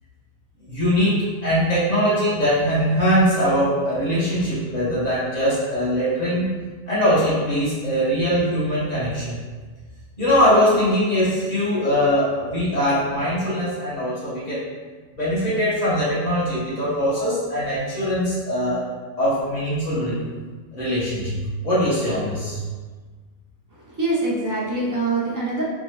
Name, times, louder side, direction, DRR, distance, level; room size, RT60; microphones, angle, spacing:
voice 1, 0.7-6.5 6.9-9.3 10.2-14.6 15.1-18.8 19.2-20.2 20.7-22.6, equal, 30° left, -11 dB, 1.7 m, -21 dB
voice 2, 23.7-25.6, right 2 dB, 20° right, -6 dB, 0.6 m, -24 dB
4.1 x 2.6 x 3.2 m, 1.4 s
omnidirectional pair, 1.3 m